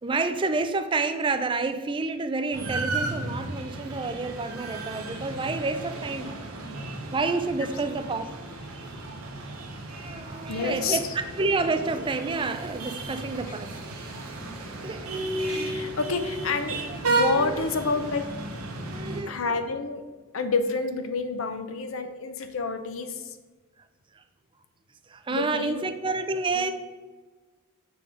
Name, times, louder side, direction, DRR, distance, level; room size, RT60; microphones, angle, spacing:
voice 1, 0.0-6.5 7.1-8.4 10.0-13.8 14.8-15.1 17.4-17.7 18.9-19.4 24.2-24.3 25.1-26.7, right 3 dB, 25° right, 8 dB, 0.4 m, -29 dB
sound 1, 2.5-19.2, right 2 dB, 90° right, 0.9 m, -33 dB
voice 2, 10.5-11.0 15.5-16.8 17.1-18.2 19.3-20.0 20.3-23.4 25.3-25.8 26.5-26.7, left 4 dB, 70° left, 8 dB, 0.6 m, -28 dB
6.8 x 3.6 x 4.9 m, 1.3 s
head